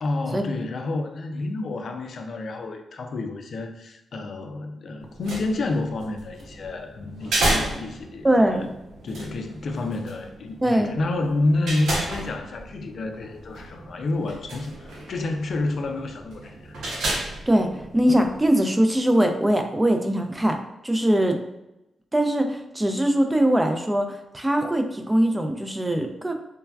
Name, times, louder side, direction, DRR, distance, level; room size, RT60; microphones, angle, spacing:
voice 1, 0.0-8.7 9.0-16.7, left 2 dB, 65° left, 5 dB, 0.4 m, -29 dB
sound 1, 5.0-18.5, right 1 dB, 80° right, 0.7 m, -33 dB
voice 2, 8.2-8.7 10.6-10.9 17.5-17.7 17.9-20.6 20.8-21.4 22.1-26.3, right 1 dB, 15° right, 5 dB, 0.4 m, -21 dB
3.2 x 2.2 x 2.3 m, 0.90 s
supercardioid pair, 55°, 0 cm